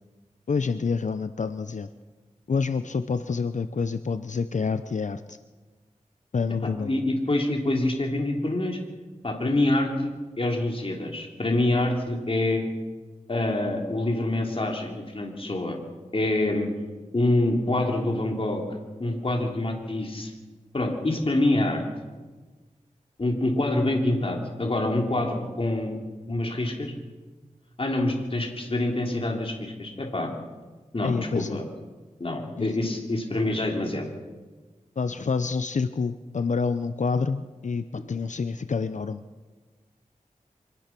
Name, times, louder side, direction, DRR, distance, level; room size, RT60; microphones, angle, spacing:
voice 1, 0.5-1.9 2.5-5.4 6.3-7.0 31.0-31.6 32.6-32.7 35.0-39.2, left 5 dB, 65° left, 11 dB, 0.7 m, -27 dB
voice 2, 6.6-8.8 9.2-12.6 13.3-15.8 16.1-16.7 17.1-18.6 19.0-20.3 20.7-21.8 23.2-26.0 26.3-26.9 27.8-30.3 30.9-31.6 32.2-34.1 37.9-38.0, left 1 dB, 45° left, 1 dB, 3.2 m, -26 dB
24.5 x 18.5 x 6.0 m, 1.3 s
wide cardioid pair, 75°, 13 cm